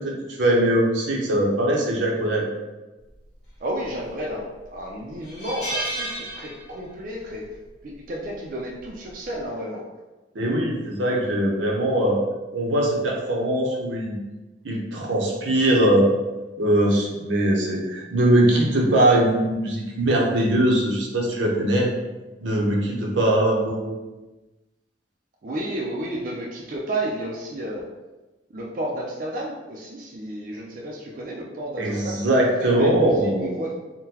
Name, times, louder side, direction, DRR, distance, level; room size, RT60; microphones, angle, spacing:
voice 1, 0.0-2.4 10.3-12.2 12.5-14.2 14.6-16.1 16.6-21.9 22.4-23.9 31.8-33.6, right 1 dB, 90° right, -2 dB, 0.7 m, -21 dB
voice 2, 3.6-7.5 7.8-9.8 25.4-27.9 28.5-32.2 32.6-33.7, right 1 dB, 45° right, -3 dB, 0.4 m, -32 dB
sound 1, 3.8-4.3 4.7-4.8 5.2-7.0 7.3-7.6 8.8-9.1, right 1 dB, 65° left, 1.4 m, -32 dB
3.7 x 2.1 x 2.8 m, 1.1 s
head